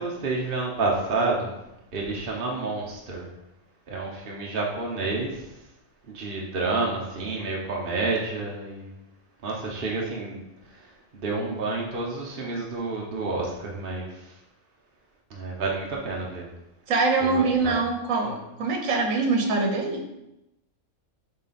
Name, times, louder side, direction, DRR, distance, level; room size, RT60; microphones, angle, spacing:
voice 1, 0.0-1.5 1.9-3.3 3.9-5.4 6.1-8.9 9.4-10.4 11.1-14.1 15.3-16.5 17.2-17.8, right 3 dB, 45° right, -2 dB, 1.1 m, -29 dB
voice 2, 16.9-20.0, right 3 dB, 75° right, 3 dB, 1.4 m, -24 dB
7.9 x 3.3 x 4.2 m, 0.90 s
omnidirectional pair, 1.4 m